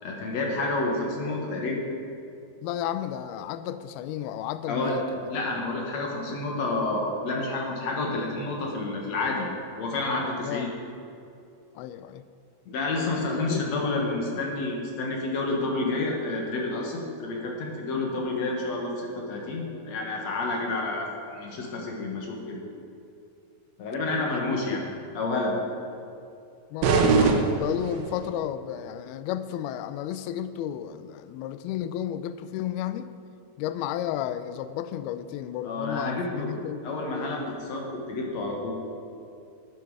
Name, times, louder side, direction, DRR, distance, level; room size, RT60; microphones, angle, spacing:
voice 1, 0.0-1.8 4.7-5.0 5.3-9.5 9.8-10.7 12.7-22.6 23.8-24.8 25.1-25.6 35.6-36.5 36.8-38.7, left 2 dB, 60° left, 0 dB, 1.9 m, -29 dB
voice 2, 2.6-5.3 10.4-10.7 11.8-12.2 13.3-13.6 24.3-24.8 26.7-33.1 33.6-36.8, left 11 dB, 85° left, 12 dB, 2.2 m, -33 dB
sound 1, 26.8-28.3, right 4 dB, 75° right, 2.7 m, -22 dB
13.0 x 10.0 x 4.8 m, 2.6 s
omnidirectional pair, 4.9 m